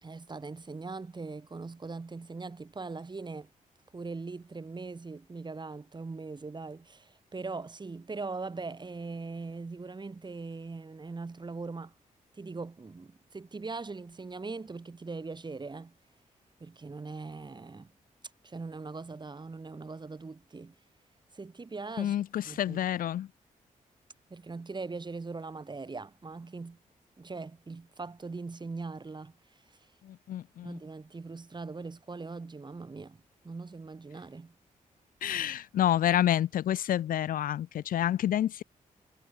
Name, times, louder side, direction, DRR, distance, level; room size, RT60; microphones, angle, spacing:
voice 1, 0.0-3.5 3.9-11.9 12.4-15.9 16.6-17.9 18.4-20.7 21.3-22.2 22.4-22.8 24.3-26.8 27.2-29.3 30.6-34.5, right 3 dB, 30° right, 3.3 m, -41 dB
voice 2, 22.0-23.3 30.0-30.8 35.2-38.6, left 11 dB, 85° left, 0.5 m, -28 dB
cardioid pair, 90°, 14 cm